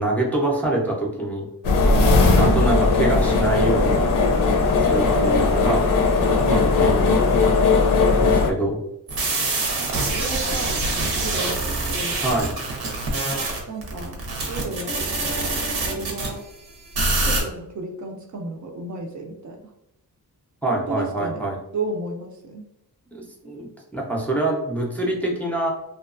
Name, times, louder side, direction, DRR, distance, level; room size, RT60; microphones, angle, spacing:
voice 1, 0.0-1.5 2.4-4.0 4.8-5.9 6.4-8.8 12.2-12.5 20.6-21.6 23.1-25.7, right 1 dB, 5° left, -2 dB, 0.5 m, -25 dB
sound 1, 1.6-8.5, left 3 dB, 65° left, 0.5 m, -18 dB
voice 2, 1.9-2.8 9.8-12.2 13.7-16.4 17.2-19.6 20.7-21.5 21.7-22.6, right 3 dB, 55° right, 3 dB, 0.5 m, -33 dB
sound 2, 9.1-16.3 16.9-17.4, right 2 dB, 85° right, 0.8 m, -25 dB
2.7 x 2.2 x 2.4 m, 0.83 s
wide cardioid pair, 115°, 37 cm